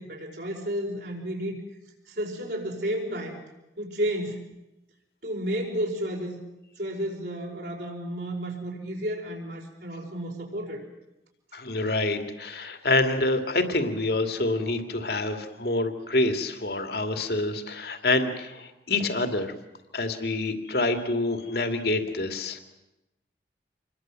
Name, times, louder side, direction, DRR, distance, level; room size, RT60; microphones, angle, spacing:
voice 1, 0.0-1.6 2.1-3.4 3.8-4.4 5.2-6.4 6.8-10.8, equal, 70° right, -2 dB, 5.4 m, -32 dB
voice 2, 11.5-19.5 19.9-22.6, left 2 dB, 60° left, 7 dB, 2.5 m, -27 dB
27.0 x 21.5 x 7.7 m, 0.95 s
head